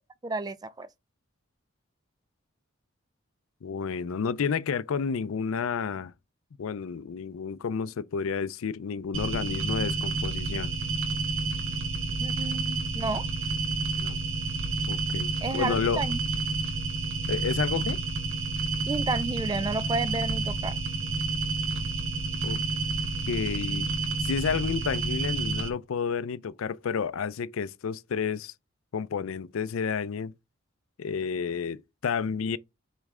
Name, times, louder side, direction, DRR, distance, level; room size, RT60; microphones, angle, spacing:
voice 1, 0.2-0.9 12.2-13.2 15.4-16.2 18.9-20.8, right 3 dB, 20° right, 0.3 m, -31 dB
voice 2, 3.6-6.1 6.6-10.7 14.0-14.2 14.9-16.0 17.3-18.0 22.4-22.6 23.3-23.9 24.2-28.5 28.9-30.3 31.0-32.6, left 6 dB, 85° left, 0.4 m, -30 dB
sound 1, 9.1-25.7, right 3 dB, 80° right, 1.3 m, -30 dB
8.2 x 3.2 x 3.6 m
head